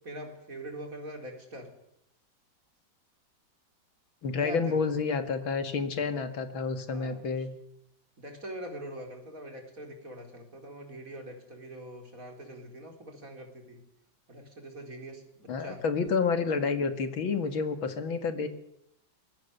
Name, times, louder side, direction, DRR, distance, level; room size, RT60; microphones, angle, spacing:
voice 1, 0.0-1.7 4.3-4.9 6.9-7.5 8.2-13.8 14.3-15.8, right 1 dB, 40° right, 3 dB, 4.5 m, -43 dB
voice 2, 4.2-7.5 15.5-18.5, left 5 dB, 75° left, 9 dB, 2.7 m, -29 dB
24.0 x 20.5 x 6.8 m, 0.74 s
omnidirectional pair, 2.2 m